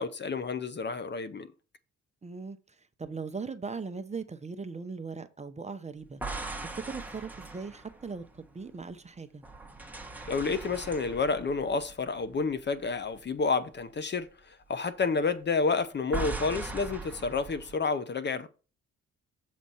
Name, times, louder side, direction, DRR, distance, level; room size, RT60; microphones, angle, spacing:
voice 1, 0.0-1.5 10.3-14.3 14.7-18.5, left 4 dB, 35° left, 0.8 m, -29 dB
voice 2, 2.2-6.2 6.6-9.4, right 4 dB, 20° right, 0.8 m, -39 dB
sound 1, 6.0-9.0 9.4-12.8 13.1-13.4 16.1-17.8, right 3 dB, 5° right, 1.2 m, -40 dB
7.5 x 4.2 x 5.5 m
cardioid pair, 90°, 30 cm